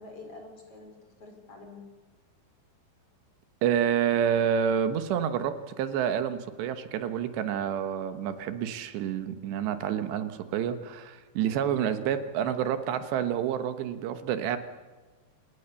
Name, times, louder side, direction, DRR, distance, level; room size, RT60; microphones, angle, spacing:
voice 1, 0.0-1.8 11.4-11.7, left 2 dB, 35° left, 3 dB, 5.4 m, -47 dB
voice 2, 3.6-14.6, right 9 dB, 80° right, 9 dB, 3.3 m, -28 dB
28.5 x 18.5 x 7.0 m, 1.3 s
omnidirectional pair, 5.0 m